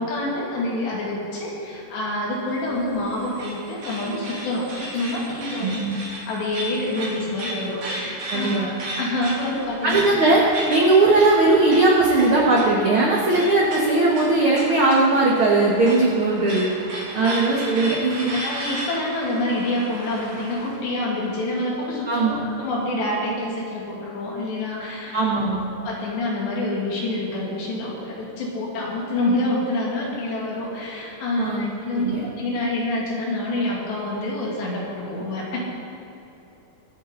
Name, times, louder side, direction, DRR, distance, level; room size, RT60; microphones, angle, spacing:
voice 1, 0.0-5.7 6.1-10.0 17.2-17.3 18.3-25.2 25.8-35.6, left 1 dB, 75° left, -4 dB, 4.8 m, -27 dB
sound 1, 2.6-20.8, right 1 dB, 50° right, 4.3 m, -35 dB
voice 2, 5.6-5.9 8.3-8.7 9.8-10.4 10.7-16.7 17.1-18.4 22.1-22.4 25.1-25.7 31.4-32.2, right 2 dB, 80° right, -4 dB, 1.2 m, -19 dB
24.0 x 9.0 x 4.0 m, 3.0 s
omnidirectional pair, 5.0 m